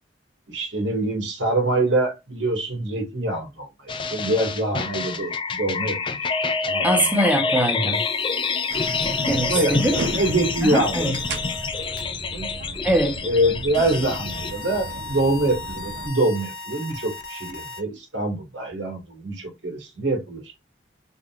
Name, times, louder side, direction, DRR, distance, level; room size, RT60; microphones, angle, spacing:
voice 1, 0.5-6.3 6.6-7.1 9.3-11.1 12.3-12.5 13.2-20.4, right 1 dB, 90° right, 2.0 m, -25 dB
sound 1, 3.9-14.5, left 4 dB, 30° left, 0.4 m, -27 dB
voice 2, 6.8-8.0 8.9-9.9 10.6-11.2 12.8-13.2, right 1 dB, 10° right, 0.9 m, -22 dB
sound 2, 7.9-12.0 12.9-13.0 13.7-17.8, left 3 dB, 55° left, 1.0 m, -38 dB
sound 3, 8.7-16.1, right 2 dB, 75° right, 0.7 m, -35 dB
3.9 x 3.5 x 2.4 m
head